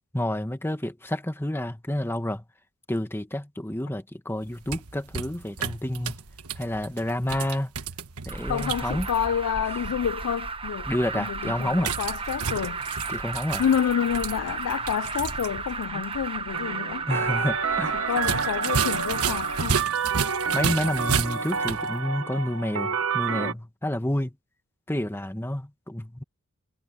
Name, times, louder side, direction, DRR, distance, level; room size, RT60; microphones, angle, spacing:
voice 1, 0.1-2.4 2.9-6.2 6.6-7.7 8.3-9.1 10.9-11.9 13.1-13.6 17.1-18.0 20.5-24.3 24.9-26.2, left 1 dB, 10° left, 1.5 m, -29 dB
sound 1, 4.4-9.2 11.8-15.5 15.8-15.9 18.1-21.9, right 6 dB, 80° right, 1.4 m, -32 dB
Alarm, 8.3-19.8, right 4 dB, 25° right, 1.0 m, -34 dB
voice 2, 8.5-10.9 11.1-12.8 13.6-17.1 17.9-19.9, left 8 dB, 80° left, 0.4 m, -28 dB
sound 2, 16.5-23.5, right 5 dB, 65° right, 1.2 m, -29 dB
head